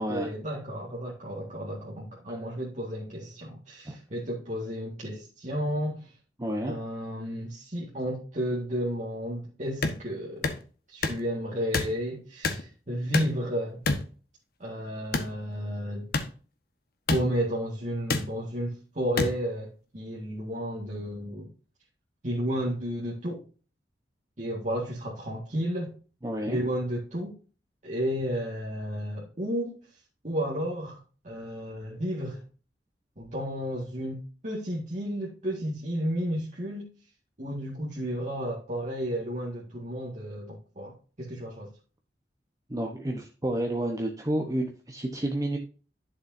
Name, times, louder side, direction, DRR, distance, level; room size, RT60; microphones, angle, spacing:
voice 1, 0.0-6.1 6.7-10.5 10.9-13.8 14.6-16.1 17.1-21.5 22.2-23.4 24.4-25.9 26.5-27.4 27.8-29.8 30.2-32.4 33.2-36.9 37.4-41.7, equal, 45° right, 2.0 m, -32 dB
voice 2, 6.4-6.7 26.2-26.6 42.7-45.6, right 1 dB, 20° right, 1.0 m, -30 dB
sound 1, 9.8-10.0 10.4-10.6 11.0-11.2 11.7-11.9 12.4-12.6 13.1-13.4 13.9-14.0 15.1-15.3 16.1-16.3 17.1-17.2 18.1-18.2 19.2-19.3, left 3 dB, 60° left, 1.3 m, -26 dB
11.0 x 6.6 x 2.7 m
head